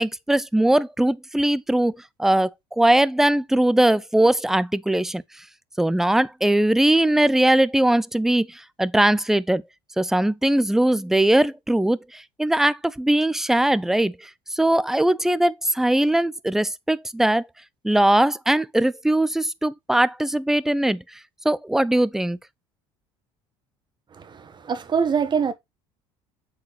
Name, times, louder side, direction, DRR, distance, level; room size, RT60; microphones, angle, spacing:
voice 1, 0.0-5.4 5.8-9.6 10.0-17.5 17.8-21.2 21.4-22.4, right 1 dB, 5° right, 0.5 m, -20 dB
voice 2, 24.1-25.5, right 6 dB, 35° right, 1.3 m, -24 dB
8.0 x 4.7 x 3.1 m
supercardioid pair, 80°, 13 cm